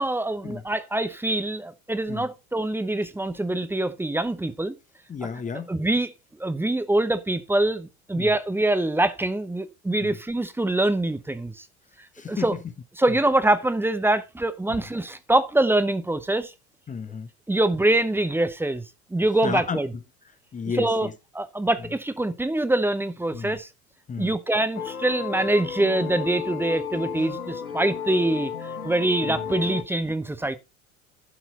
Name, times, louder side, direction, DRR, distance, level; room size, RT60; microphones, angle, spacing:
voice 1, 0.0-4.7 5.7-6.1 6.4-11.6 12.3-12.6 13.0-16.5 17.5-18.8 19.1-19.9 20.8-21.1 21.3-23.7 24.2-30.6, right 1 dB, 5° right, 0.8 m, -24 dB
voice 2, 5.1-5.7 8.2-8.3 10.0-10.2 12.2-12.5 14.7-14.8 16.9-17.3 19.4-19.8 20.5-21.1 23.3-23.6 24.1-24.3 29.2-29.4, left 5 dB, 20° left, 1.0 m, -32 dB
sound 1, 24.7-29.8, left 7 dB, 80° left, 1.0 m, -33 dB
11.5 x 6.0 x 4.2 m
figure-of-eight pair, 75°, 43 cm